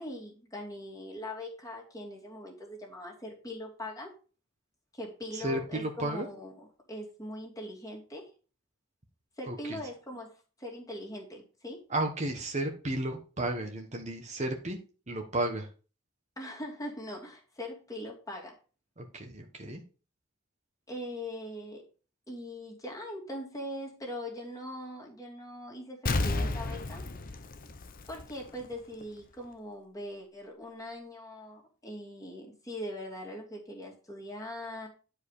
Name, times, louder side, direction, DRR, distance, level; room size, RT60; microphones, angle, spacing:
voice 1, 0.0-4.1 4.9-8.3 9.4-11.8 16.4-18.6 20.9-21.8 22.3-27.0 28.1-34.9, left 1 dB, 15° left, -1 dB, 2.6 m, -41 dB
voice 2, 5.3-6.3 9.5-9.8 11.9-14.8 15.1-15.7 19.0-19.8, right 1 dB, 35° right, 3 dB, 1.4 m, -33 dB
Explosion, 26.1-28.7 29.0-29.1, left 2 dB, 45° left, 0.8 m, -32 dB
11.0 x 4.9 x 5.0 m, 0.36 s
head